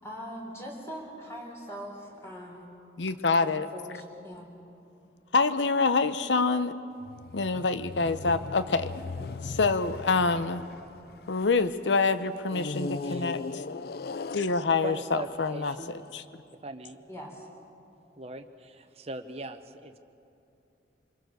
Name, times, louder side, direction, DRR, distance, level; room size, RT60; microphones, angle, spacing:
voice 1, 0.0-2.7 3.4-4.5 17.1-17.5, equal, 15° left, -1 dB, 4.0 m, -41 dB
voice 2, 3.0-3.7 5.3-6.8 7.3-8.9 9.4-10.6 11.3-13.6 14.3-15.7 16.1-16.2, left 4 dB, 85° left, 12 dB, 0.8 m, -26 dB
sound 1, 7.0-11.7 12.5-15.9, left 3 dB, 55° left, 0.5 m, -39 dB
voice 3, 14.8-15.9 16.6-17.0 18.2-20.0, right 2 dB, 35° right, 8 dB, 1.0 m, -40 dB
26.0 x 22.0 x 6.7 m, 2.6 s
head